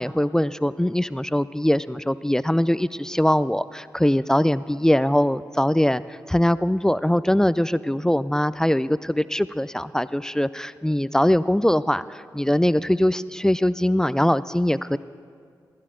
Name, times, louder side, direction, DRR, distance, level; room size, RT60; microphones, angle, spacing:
voice 1, 0.0-15.0, left 1 dB, 5° left, 16 dB, 0.3 m, -22 dB
15.5 x 12.5 x 3.8 m, 2.1 s
supercardioid pair, 40°, 8 cm